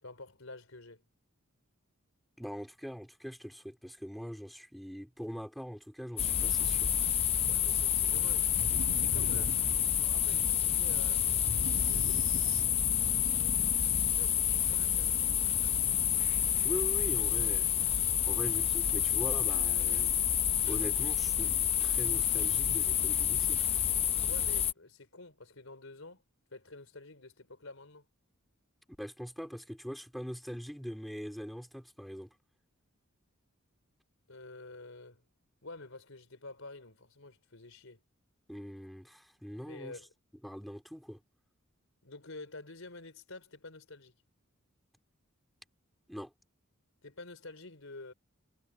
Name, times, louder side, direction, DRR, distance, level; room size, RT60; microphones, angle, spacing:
voice 1, 0.0-1.0 7.5-8.5 9.0-9.5 9.9-13.6 14.1-15.2 24.2-26.2 26.5-28.0 34.3-35.2 35.6-38.0 39.5-40.1 42.0-44.1 47.0-48.1, left 2 dB, 70° left, 4.1 m, -49 dB
voice 2, 2.4-6.9 9.3-9.5 16.6-17.7 18.2-20.3 20.6-23.6 29.0-32.3 38.5-40.0 40.4-41.2 46.1-46.3, equal, ahead, 3.8 m, -42 dB
sound 1, 6.2-24.7, left 9 dB, 30° left, 0.6 m, -29 dB
sound 2, 8.6-10.3 11.5-13.1, right 1 dB, 70° right, 1.7 m, -41 dB
head